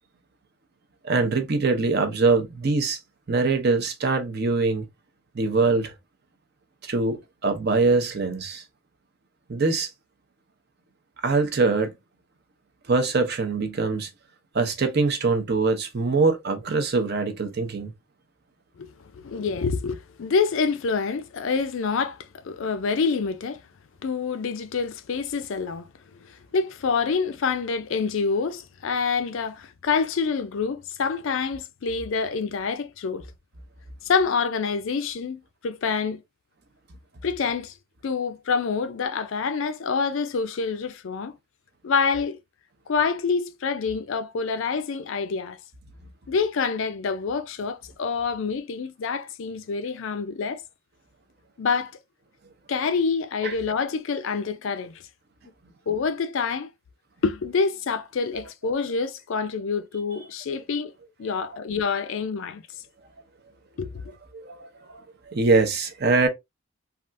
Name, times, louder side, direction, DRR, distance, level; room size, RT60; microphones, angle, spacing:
voice 1, 1.0-3.0 3.3-4.9 5.3-5.9 6.8-8.6 9.5-9.9 11.2-11.9 12.9-14.1 14.5-17.9 53.4-53.5 64.3-64.7 65.3-66.3, right 3 dB, 45° right, 0.6 m, -23 dB
voice 2, 19.1-23.6 24.0-33.3 34.0-36.2 37.2-37.7 38.0-41.4 41.8-42.4 42.9-45.6 46.3-50.6 51.6-51.9 52.7-55.0 55.9-56.7 57.2-60.9 61.2-62.6 63.8-64.2, left 5 dB, 60° left, 0.4 m, -27 dB
3.3 x 2.4 x 2.5 m
head